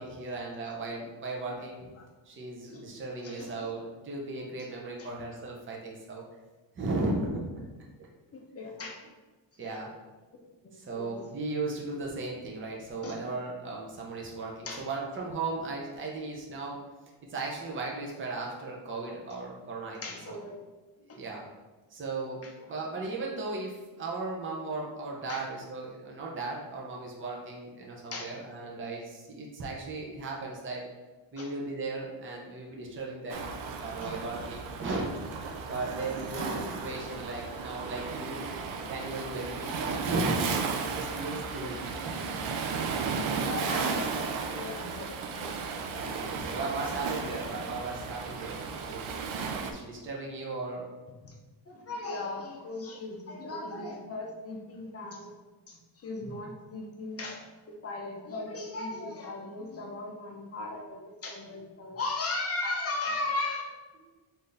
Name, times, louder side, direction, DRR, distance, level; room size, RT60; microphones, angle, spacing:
voice 1, 0.0-1.9 2.2-6.2 6.7-7.5 8.0-8.1 9.6-9.9 10.7-16.8 17.3-20.4 21.0-21.4 21.9-30.8 31.3-35.1 35.7-38.4 38.9-41.8 42.0-42.2 45.9-49.1 49.6-50.9 64.1-64.2, right 3 dB, 25° right, -2 dB, 0.6 m, -36 dB
voice 2, 3.2-3.7 4.6-4.7 5.0-5.1 8.3-9.0 9.7-9.9 10.6-11.2 13.0-13.2 14.7-14.9 19.3-19.4 20.0-20.5 21.1-21.2 22.4-22.6 25.3-25.4 28.1-28.3 31.4-31.5 34.0-34.1 36.2-36.6 38.3-38.5 41.6-42.4 43.4-45.5 45.9-46.0 51.2-51.3 51.7-55.3 55.7-63.7, left 2 dB, 30° left, 0 dB, 0.6 m, -38 dB
Waves surf, 33.3-49.7, right 5 dB, 90° right, 0.5 m, -34 dB
3.9 x 2.6 x 3.3 m, 1.2 s
wide cardioid pair, 165°, 46 cm